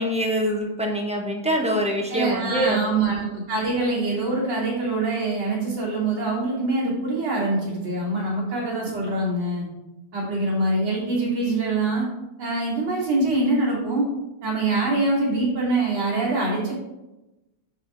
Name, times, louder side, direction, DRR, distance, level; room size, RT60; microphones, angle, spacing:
voice 1, 0.0-2.8, equal, 5° right, 0 dB, 0.5 m, -24 dB
voice 2, 2.1-9.7 10.1-12.0 12.4-14.1 14.4-16.7, right 2 dB, 85° right, -6 dB, 3.8 m, -24 dB
11.0 x 4.5 x 3.9 m, 1.0 s
omnidirectional pair, 2.1 m